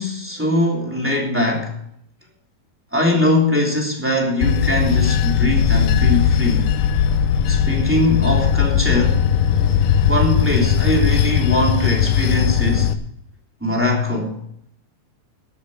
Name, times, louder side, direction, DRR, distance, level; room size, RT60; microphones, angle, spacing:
voice 1, 0.0-1.8 2.9-6.7 7.5-9.2 10.1-12.9 13.6-14.4, left 1 dB, 5° right, 2.6 m, -21 dB
Bell / Train, 4.4-12.9, left 8 dB, 75° left, 2.1 m, -18 dB
13.5 x 9.9 x 6.5 m
omnidirectional pair, 4.4 m